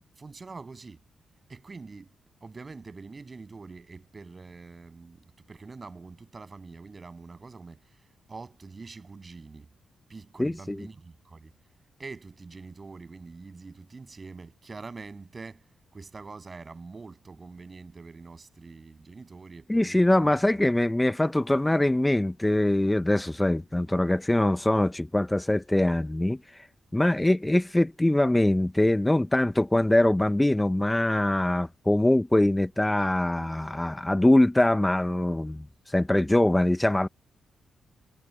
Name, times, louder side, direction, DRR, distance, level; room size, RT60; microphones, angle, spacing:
voice 1, 0.2-1.0 1.5-2.1 2.4-7.9 8.3-9.7 10.1-11.5 12.0-15.6 15.9-20.2, right 4 dB, 35° right, 7.6 m, -44 dB
voice 2, 10.4-10.8 19.7-26.7 26.9-37.1, left 1 dB, 10° left, 0.6 m, -23 dB
cardioid pair, 80°, 0 cm